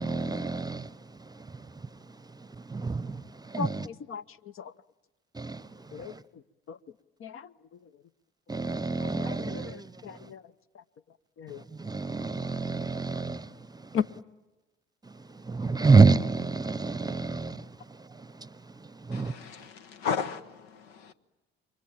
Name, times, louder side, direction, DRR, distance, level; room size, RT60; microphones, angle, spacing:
voice 1, 0.0-3.9 5.3-6.2 8.5-10.3 11.5-14.0 15.0-19.7, right 4 dB, 15° right, 0.9 m, -29 dB
voice 2, 3.6-4.7 5.9-8.0 9.0-11.7 13.9-14.0, left 7 dB, 45° left, 0.9 m, -38 dB
voice 3, 19.1-21.1, left 6 dB, 75° left, 1.2 m, -35 dB
28.0 x 24.0 x 8.7 m
hypercardioid pair, 55°, 30 cm